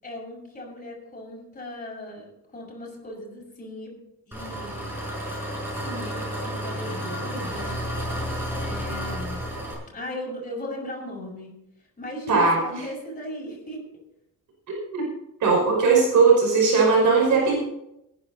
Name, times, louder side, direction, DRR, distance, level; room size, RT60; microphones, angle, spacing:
voice 1, 0.0-4.0 4.3-4.9 5.8-7.8 8.6-9.4 9.9-11.5 12.0-13.8, equal, 25° left, -3 dB, 5.9 m, -37 dB
Engine, 4.3-9.7, equal, 5° right, 6.5 m, -31 dB
voice 2, 12.3-12.8 14.7-15.0 15.4-17.6, right 4 dB, 65° right, -2 dB, 5.4 m, -19 dB
18.5 x 10.0 x 4.1 m, 0.82 s
cardioid pair, 145°, 33 cm